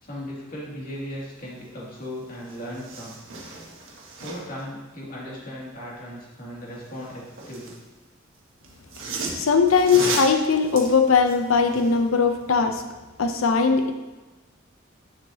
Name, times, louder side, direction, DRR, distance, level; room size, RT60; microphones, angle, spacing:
voice 1, 0.0-3.2 4.2-7.8, equal, 45° left, -5 dB, 2.5 m, -37 dB
sound 1, 2.0-2.1 2.4-4.6 6.8-7.8 8.6-12.0 12.4-12.5, right 3 dB, 75° right, 1.5 m, -35 dB
voice 2, 9.4-12.8 13.2-13.9, left 5 dB, 85° left, 6 dB, 0.7 m, -20 dB
9.6 x 7.0 x 2.8 m, 1.1 s
head